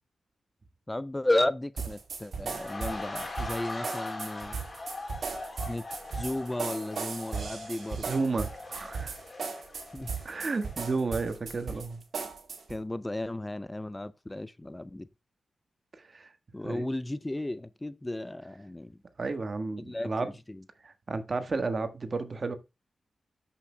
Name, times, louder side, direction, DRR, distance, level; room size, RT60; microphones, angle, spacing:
voice 1, 0.9-4.6 5.6-5.8 6.1-8.1 9.9-10.1 12.7-15.1 16.5-19.0 19.8-20.6, left 1 dB, 20° left, 0.4 m, -33 dB
sound 1, 1.8-12.8, right 5 dB, 70° right, 2.0 m, -37 dB
sound 2, 2.4-11.3 11.6-11.8, left 2 dB, 45° left, 3.1 m, -41 dB
voice 2, 8.0-9.2 10.2-12.0 16.1-16.3 16.6-16.9 19.2-20.3 20.8-22.6, right 3 dB, 50° right, 1.3 m, -32 dB
13.0 x 5.8 x 2.2 m
supercardioid pair, 40°, 0 cm